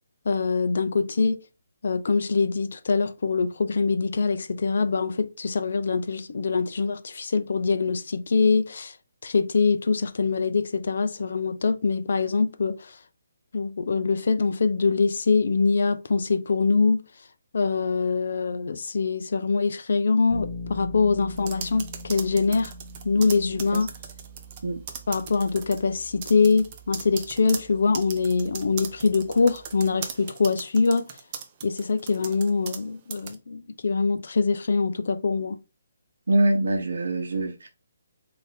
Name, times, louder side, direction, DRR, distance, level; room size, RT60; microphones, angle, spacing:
voice 1, 0.3-1.4 1.8-8.9 9.2-12.9 13.5-17.0 17.5-22.7 23.0-23.9 25.1-31.1 31.6-35.6, left 4 dB, 55° left, 0.4 m, -24 dB
Bass guitar, 20.3-30.1, left 1 dB, 10° left, 0.8 m, -43 dB
sound 1, 21.4-24.6 24.9-25.8 26.2-32.8 33.1-33.3, right 7 dB, 25° right, 0.5 m, -38 dB
voice 2, 36.3-37.7, right 1 dB, 85° right, 0.9 m, -24 dB
3.8 x 2.6 x 3.4 m
hypercardioid pair, 175°, 0 cm